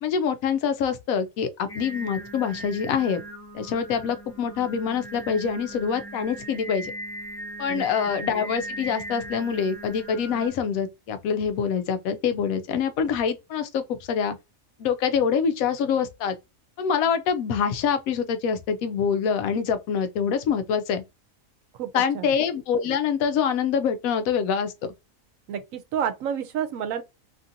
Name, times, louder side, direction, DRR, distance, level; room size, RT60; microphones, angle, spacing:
voice 1, 0.0-3.2 3.5-6.9 7.6-14.4 14.8-16.3 16.8-21.0 21.9-24.7, left 7 dB, 90° left, 1.0 m, -25 dB
Singing, 1.7-10.5, right 1 dB, 25° left, 0.3 m, -39 dB
voice 2, 21.8-22.3 25.5-27.0, right 8 dB, 80° right, 1.0 m, -30 dB
2.9 x 2.5 x 2.6 m
omnidirectional pair, 1.4 m